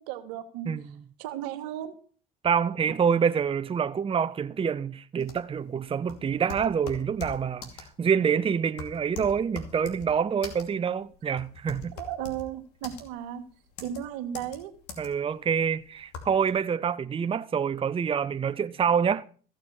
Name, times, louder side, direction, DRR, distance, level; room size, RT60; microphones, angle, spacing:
voice 1, 0.0-1.9 11.9-13.4 13.8-14.7, right 10 dB, 85° right, 1.8 m, -35 dB
voice 2, 2.4-11.9 15.0-19.2, right 7 dB, 30° right, 0.7 m, -26 dB
sound 1, 5.2-16.5, left 4 dB, 90° left, 2.6 m, -42 dB
15.0 x 6.6 x 7.7 m
supercardioid pair, 75°, 20 cm